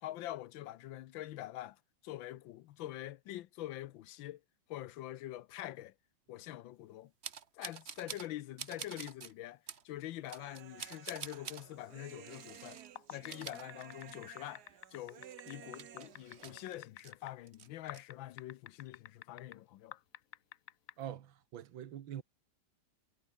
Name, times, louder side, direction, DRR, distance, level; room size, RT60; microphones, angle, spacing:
voice 1, 0.0-4.4 4.7-5.9 6.3-7.1 7.5-12.8 13.1-14.6 14.9-20.0, left 14 dB, 80° left, 1.5 m, -45 dB
sound 1, 7.2-8.3 8.6-9.3 9.7-9.8 10.3-11.6 12.3-12.9 13.2-14.4 14.7-14.8 15.2-17.1 17.5-18.0, right 7 dB, 40° right, 1.1 m, -47 dB
Human voice, 10.4-16.8, right 10 dB, 60° right, 1.4 m, -55 dB
sound 2, 12.8-17.3 17.9-19.6 19.9-20.9, left 12 dB, 65° left, 0.8 m, -48 dB
voice 2, 21.0-22.2, right 10 dB, 80° right, 2.0 m, -44 dB
omnidirectional pair, 2.1 m